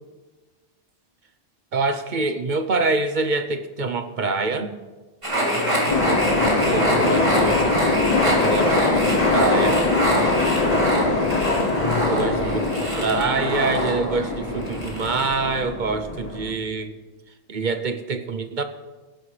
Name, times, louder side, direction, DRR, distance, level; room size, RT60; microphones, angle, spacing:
voice 1, 1.7-4.7 6.7-7.8 8.2-9.8 12.0-12.7 13.0-17.0 17.5-18.6, right 3 dB, 45° right, 9 dB, 0.8 m, -25 dB
sound 1, 5.2-15.6, equal, 25° right, 2.9 m, -25 dB
voice 2, 5.3-7.1 11.8-12.3, left 2 dB, 75° left, -5 dB, 3.8 m, -33 dB
sound 2, 5.9-16.5, left 3 dB, 35° left, 1.0 m, -23 dB
19.0 x 10.5 x 3.3 m, 1.3 s
omnidirectional pair, 1.2 m